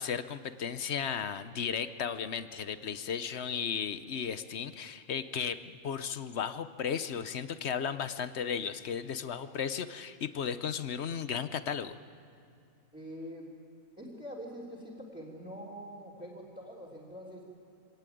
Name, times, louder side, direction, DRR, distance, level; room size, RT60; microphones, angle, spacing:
voice 1, 0.0-12.0, left 7 dB, 55° left, 12 dB, 1.0 m, -35 dB
voice 2, 12.9-13.5 14.0-17.4, equal, 5° right, -6 dB, 3.4 m, -44 dB
25.0 x 18.0 x 9.2 m, 2.5 s
omnidirectional pair, 1.5 m